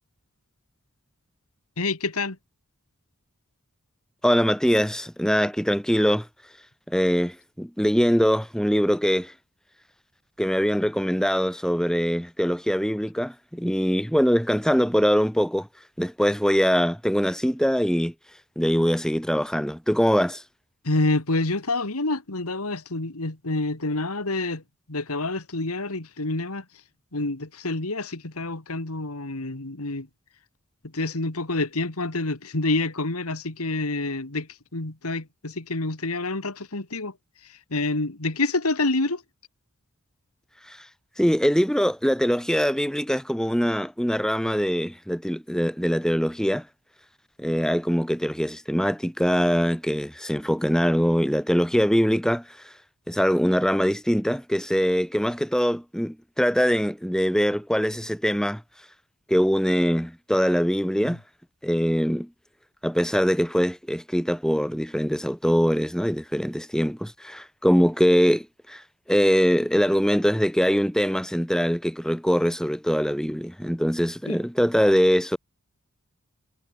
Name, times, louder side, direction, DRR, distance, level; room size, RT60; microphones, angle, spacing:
voice 1, 1.8-2.4 20.8-24.6 24.9-26.6 27.1-30.1 30.9-37.1 37.7-39.2 61.0-61.2 74.3-74.4, left 2 dB, 85° left, 2.4 m, -27 dB
voice 2, 4.2-6.3 6.9-9.3 10.4-15.7 16.0-18.1 18.6-20.4 40.7-40.8 41.2-46.7 47.4-52.4 53.1-58.6 59.3-61.2 61.6-62.3 62.8-68.8 69.1-75.4, equal, 5° left, 4.0 m, -23 dB
head